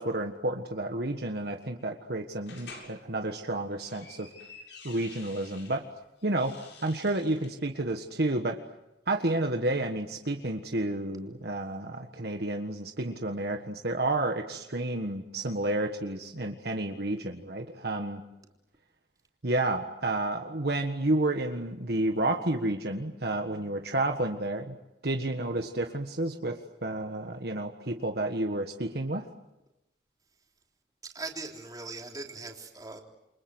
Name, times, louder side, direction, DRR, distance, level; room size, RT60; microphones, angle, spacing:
voice 1, 0.0-4.3 4.8-5.8 6.2-6.5 6.8-8.6 9.1-18.2 19.4-24.8 25.0-29.3, right 2 dB, 60° right, 4 dB, 1.6 m, -30 dB
sound 1, 2.5-2.9 3.6-5.8 6.2-7.5, left 4 dB, 80° left, 7.3 m, -49 dB
voice 2, 31.0-33.0, right 3 dB, 20° right, 1 dB, 3.6 m, -40 dB
29.0 x 25.0 x 8.0 m, 0.94 s
head